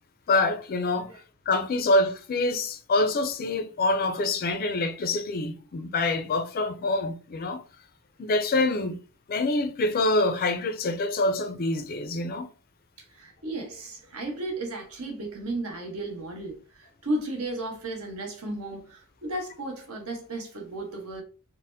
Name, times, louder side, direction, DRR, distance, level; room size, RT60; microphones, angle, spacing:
voice 1, 0.3-1.1 1.5-7.6 8.2-9.0 9.3-12.5, left 2 dB, 45° left, 0.4 m, -26 dB
voice 2, 13.1-21.2, right 1 dB, 70° right, 1.0 m, -34 dB
4.0 x 2.0 x 2.6 m
head